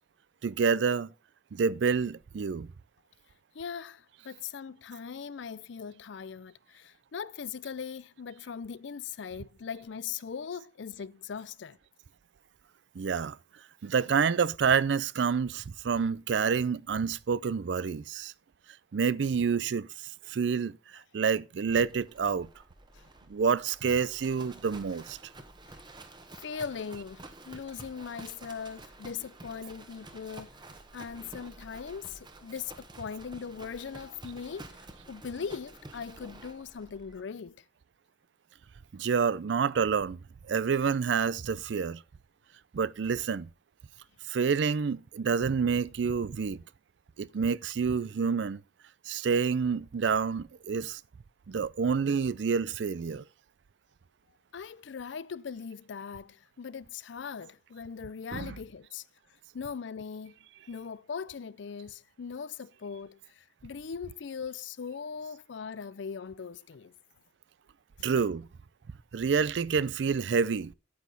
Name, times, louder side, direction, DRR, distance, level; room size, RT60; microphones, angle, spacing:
voice 1, 0.4-1.1 1.5-2.7 13.0-13.4 13.8-18.3 18.9-19.9 20.3-20.8 21.1-22.5 23.3-25.2 38.9-40.2 40.5-42.0 42.7-43.5 44.3-46.6 47.2-48.6 49.1-51.0 51.5-53.2 58.3-58.6 68.0-68.5 69.1-70.7, right 6 dB, 70° right, 0.4 m, -28 dB
voice 2, 3.5-11.8 20.2-20.4 22.9-23.1 25.6-25.8 26.4-30.6 30.9-34.8 35.1-37.6 54.5-59.0 59.5-60.4 60.7-66.9 68.0-68.1, left 6 dB, 75° left, 0.5 m, -40 dB
Livestock farm animals working animals, 21.7-37.2, right 2 dB, 25° right, 1.2 m, -50 dB
9.5 x 8.3 x 4.0 m
head